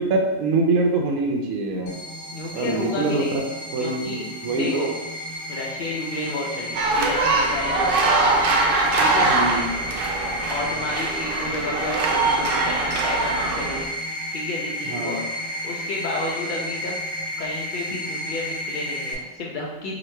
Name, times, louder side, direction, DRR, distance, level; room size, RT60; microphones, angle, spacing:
voice 1, 0.0-1.9 2.5-3.2 3.7-4.9 9.2-9.7 14.9-15.2, right 3 dB, 85° right, 1 dB, 1.0 m, -24 dB
sound 1, 1.9-19.1, equal, 50° left, 0.8 m, -32 dB
voice 2, 2.3-3.4 3.8-4.3 4.5-4.9 5.5-8.4 9.0-9.3 10.5-13.8 14.3-15.2 15.6-17.0 17.4-19.9, left 2 dB, 80° left, -3 dB, 0.4 m, -31 dB
sound 2, 6.8-13.9, right 3 dB, 65° right, 0.5 m, -22 dB
3.0 x 2.3 x 4.2 m, 1.1 s
omnidirectional pair, 1.4 m